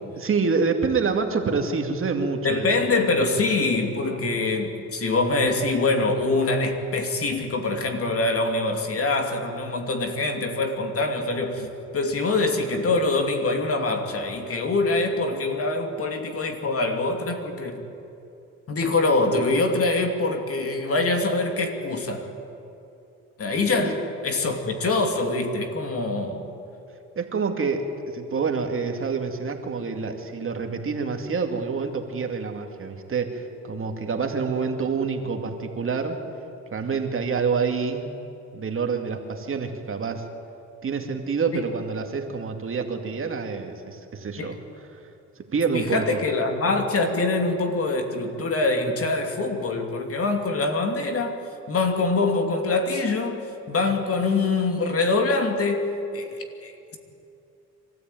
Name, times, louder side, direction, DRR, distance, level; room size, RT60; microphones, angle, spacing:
voice 1, 0.2-2.7 3.3-3.4 23.8-23.9 27.2-36.2 36.7-38.0 38.5-40.2 40.8-44.6 45.4-46.2, right 5 dB, 45° right, 4 dB, 2.3 m, -27 dB
voice 2, 2.4-17.9 18.7-22.3 23.4-26.4 41.5-41.6 44.4-44.6 45.7-51.4 51.7-57.0, left 3 dB, 50° left, 4 dB, 2.8 m, -24 dB
24.0 x 14.0 x 9.2 m, 2.8 s
cardioid pair, 90°, 30 cm